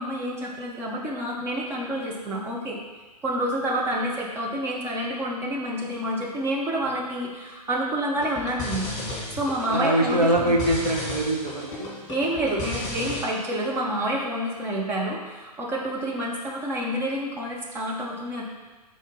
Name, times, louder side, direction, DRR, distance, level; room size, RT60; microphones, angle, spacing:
voice 1, 0.0-2.8 3.2-8.9 9.3-10.6 12.1-18.4, right 1 dB, 10° right, -2 dB, 0.6 m, -28 dB
sound 1, 8.1-13.2, left 1 dB, 25° left, 2.1 m, -34 dB
voice 2, 9.7-11.9, right 1 dB, 70° right, -2 dB, 1.3 m, -23 dB
6.4 x 3.7 x 5.2 m, 1.3 s
figure-of-eight pair, 115°, 21 cm